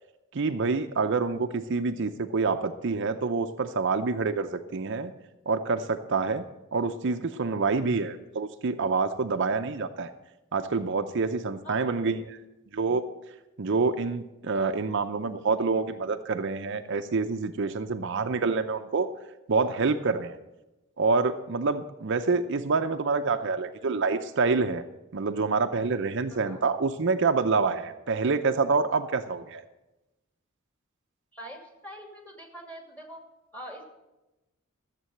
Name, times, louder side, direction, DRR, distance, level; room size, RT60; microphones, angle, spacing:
voice 1, 0.3-5.1 5.5-6.4 6.7-10.1 10.5-12.4 12.7-13.0 13.6-19.1 19.5-20.4 21.0-24.8 25.1-29.6, right 4 dB, 60° right, 8 dB, 0.6 m, -27 dB
voice 2, 11.6-12.1 26.3-26.6 31.3-33.2 33.5-33.8, equal, 10° left, 2 dB, 2.5 m, -44 dB
14.5 x 7.5 x 7.7 m, 1.0 s
head